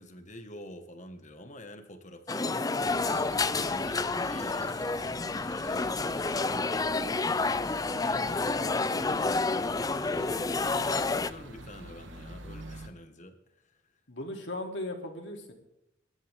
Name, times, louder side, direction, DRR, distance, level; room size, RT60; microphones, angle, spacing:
voice 1, 0.0-3.1 3.4-4.9 5.5-7.3 7.9-13.4 13.6-13.8, left 1 dB, 35° left, 7 dB, 1.7 m, -46 dB
sound 1, 2.3-11.3, left 3 dB, 20° left, 0.4 m, -29 dB
sound 2, 2.8-12.9, right 2 dB, 70° right, 1.6 m, -47 dB
voice 2, 14.1-15.5, left 1 dB, 60° left, 2 dB, 3.2 m, -37 dB
24.5 x 11.5 x 3.7 m, 0.83 s
head